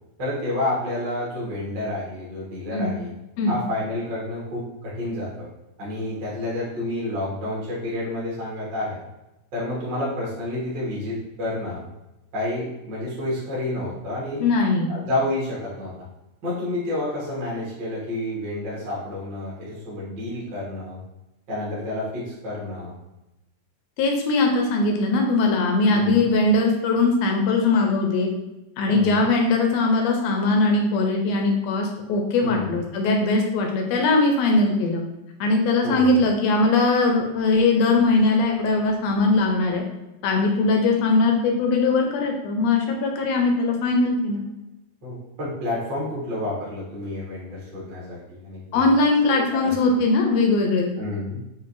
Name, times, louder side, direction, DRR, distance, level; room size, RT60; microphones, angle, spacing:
voice 1, 0.2-3.1 3.5-5.5 5.8-9.0 9.5-11.8 12.3-14.5 14.9-15.9 16.4-21.0 21.5-23.0 25.9-26.2 28.9-29.2 32.4-32.8 35.8-36.2 45.0-48.9 49.2-49.7 50.9-51.4, left 1 dB, 50° right, -7 dB, 1.5 m, -29 dB
voice 2, 14.4-14.9 24.0-28.3 28.8-35.0 35.4-39.8 40.2-44.4 48.7-50.9, left 3 dB, 85° left, 2 dB, 1.5 m, -20 dB
6.8 x 2.6 x 2.6 m, 0.98 s
omnidirectional pair, 3.6 m